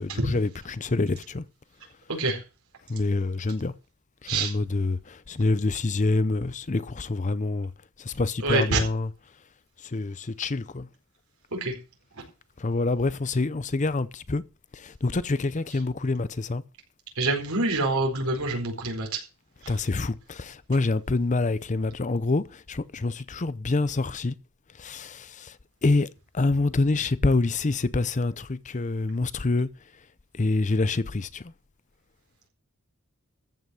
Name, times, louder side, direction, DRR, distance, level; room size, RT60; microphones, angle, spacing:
voice 1, 0.0-1.4 2.9-3.7 4.2-7.7 8.0-9.1 9.8-10.9 12.6-14.4 14.7-16.6 19.7-24.3 24.8-25.6 25.8-26.1 26.3-29.7 30.3-31.5, left 3 dB, 35° left, 0.6 m, -26 dB
voice 2, 2.1-2.4 4.3-4.5 8.4-8.8 11.5-11.7 17.2-19.2 19.6-19.7, right 2 dB, 80° right, 4.4 m, -26 dB
14.5 x 5.8 x 7.7 m
head